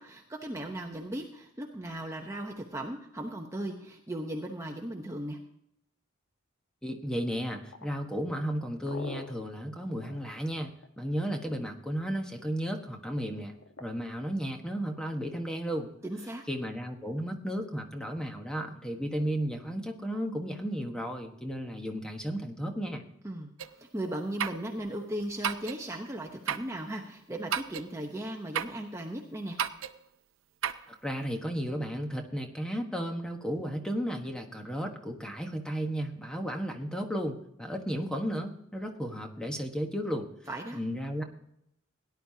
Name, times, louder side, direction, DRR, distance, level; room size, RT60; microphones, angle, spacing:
voice 1, 0.0-5.4 16.0-16.4 23.2-23.5 23.8-29.6 40.5-40.8, right 1 dB, 15° right, 1 dB, 0.9 m, -37 dB
voice 2, 6.8-13.5 13.8-15.9 16.5-23.0 31.0-40.3 40.7-41.2, equal, 5° left, 3 dB, 1.2 m, -34 dB
sound 1, 7.6-11.2 13.3-13.9, left 2 dB, 85° left, 1.2 m, -45 dB
sound 2, 23.6-23.7 24.4-24.7 25.4-25.8 26.5-26.7 27.5-27.9 28.5-28.8 29.6-30.0 30.6-30.9, right 8 dB, 70° right, 0.6 m, -32 dB
17.5 x 10.5 x 2.8 m, 0.75 s
head